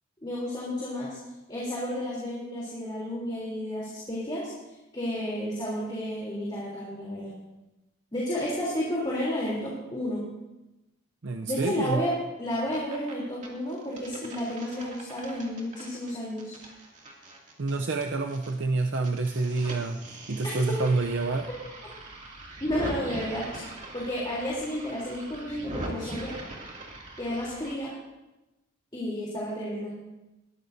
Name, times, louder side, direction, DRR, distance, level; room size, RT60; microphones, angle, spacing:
voice 1, 0.2-1.2 1.5-4.5 4.9-7.3 8.1-10.2 11.5-12.1 12.4-16.5 22.6-23.7 23.9-26.3 27.2-27.9 28.9-29.9, equal, 20° left, -6 dB, 3.3 m, -31 dB
voice 2, 11.2-12.0 17.6-20.0 20.3-21.5, right 3 dB, 65° right, 4 dB, 0.6 m, -28 dB
sound 1, 12.5-13.1 13.4-18.5 18.8-27.7, right 1 dB, 35° right, 2.5 m, -41 dB
21.0 x 13.5 x 2.7 m, 1.0 s
head